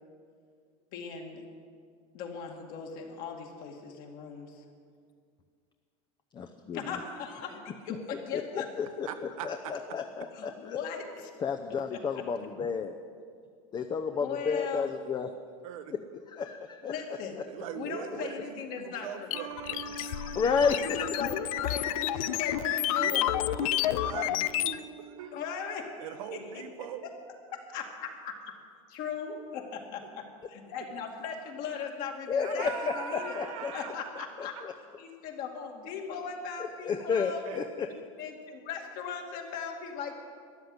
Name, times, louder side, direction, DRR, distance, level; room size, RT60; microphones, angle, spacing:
voice 1, 0.9-1.4 2.1-4.6 6.7-8.7 10.3-11.3 11.9-12.0 14.1-14.9 16.8-17.3 17.7-19.3 20.8-23.3 25.3-25.9 26.3-26.6 27.5-28.4 28.9-32.7 33.0-33.4 33.7-34.5 35.0-37.4 37.9-40.1, left 6 dB, 55° left, 2 dB, 2.4 m, -38 dB
voice 2, 6.3-7.0 8.3-8.4 8.8-9.1 9.4-10.8 11.4-12.9 13.7-15.3 16.3-16.9 20.3-21.2 32.3-33.7 34.4-34.7 36.6-37.9, left 6 dB, 25° left, 6 dB, 0.7 m, -31 dB
voice 3, 9.0-9.7 15.6-15.9 17.5-20.1 23.0-23.2 23.6-25.3 26.0-27.1 32.4-34.2 34.5-34.6 37.5-37.6, right 8 dB, 85° right, 7 dB, 1.3 m, -41 dB
sound 1, 19.3-24.8, left 14 dB, 85° left, 0.5 m, -30 dB
sound 2, 19.3-25.6, right 7 dB, 70° right, 0.6 m, -44 dB
13.0 x 10.0 x 8.0 m, 2.2 s
supercardioid pair, 125°, 17 cm